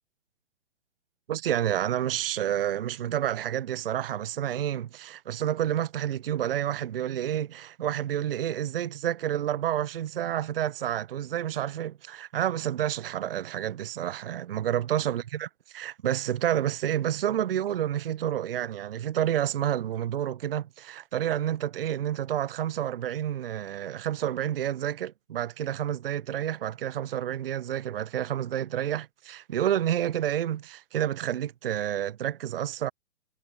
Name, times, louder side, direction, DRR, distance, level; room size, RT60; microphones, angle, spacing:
voice 1, 1.3-32.9, right 11 dB, 50° right, 0.6 m, -29 dB
figure-of-eight pair, 130°, 38 cm